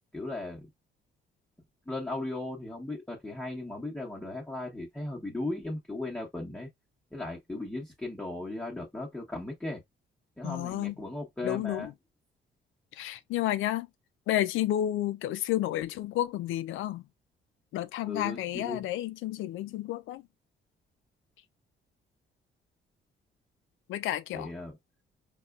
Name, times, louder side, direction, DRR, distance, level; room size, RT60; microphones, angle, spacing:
voice 1, 0.1-0.7 1.9-6.7 7.1-9.8 10.4-11.9 18.0-18.8 24.3-24.8, left 2 dB, 5° left, 1.0 m, -37 dB
voice 2, 10.4-10.9 11.4-11.9 13.0-13.9 14.3-17.0 17.7-20.2 23.9-24.5, left 13 dB, 80° left, 0.4 m, -31 dB
4.1 x 2.3 x 2.3 m
cardioid pair, 90°, 20 cm